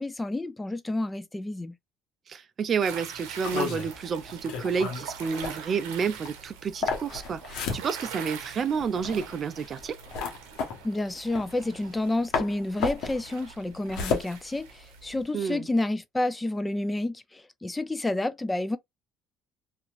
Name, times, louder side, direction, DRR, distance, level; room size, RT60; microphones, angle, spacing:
voice 1, 0.0-1.7 10.8-18.8, left 2 dB, 15° left, 0.5 m, -30 dB
voice 2, 2.3-10.0 15.3-15.7, right 6 dB, 45° right, 0.4 m, -30 dB
sound 1, 2.8-15.1, right 7 dB, 85° right, 0.7 m, -44 dB
sound 2, 3.4-12.1 12.3-15.2, left 5 dB, 75° left, 0.9 m, -33 dB
2.8 x 2.5 x 2.4 m
supercardioid pair, 80°, 0 cm